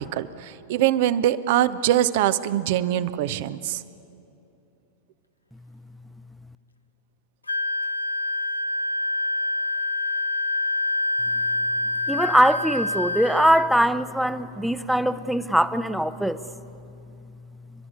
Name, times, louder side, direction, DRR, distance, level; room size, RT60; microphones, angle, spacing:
voice 1, 0.0-3.8, right 12 dB, 50° right, 15 dB, 0.8 m, -23 dB
Wind instrument woodwind instrument, 7.5-13.7, left 2 dB, 85° left, 0.8 m, -26 dB
voice 2, 12.1-16.4, right 1 dB, ahead, 14 dB, 0.7 m, -21 dB
28.5 x 12.5 x 9.6 m, 2.8 s
figure-of-eight pair, 90°, 0 cm